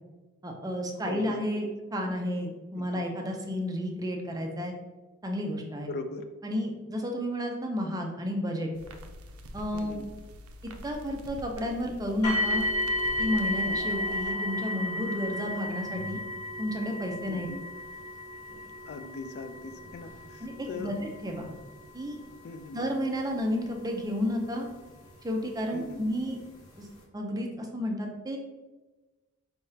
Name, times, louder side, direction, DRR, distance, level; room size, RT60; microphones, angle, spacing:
voice 1, 0.4-4.7 5.2-5.9 6.4-8.7 9.5-10.0 10.6-12.7 13.2-16.2 16.6-17.5 20.4-21.5 21.9-22.2 22.7-24.7 25.2-26.4 26.8-26.9 27.1-28.4, equal, 15° right, 2 dB, 0.5 m, -31 dB
voice 2, 1.1-1.5 2.9-3.0 5.9-6.2 9.7-10.1 13.6-13.8 17.3-17.6 18.9-20.9 21.5-21.6 22.4-22.8 25.7-26.0, left 3 dB, 50° left, 8 dB, 0.3 m, -40 dB
sound 1, 8.7-14.3, equal, 70° right, 0.5 m, -46 dB
sound 2, 12.2-25.1 26.0-26.1 26.6-26.7, left 1 dB, 70° left, 0.9 m, -34 dB
sound 3, 12.2-16.2, right 1 dB, 25° left, 1.1 m, -52 dB
4.7 x 3.5 x 2.7 m, 1.2 s
head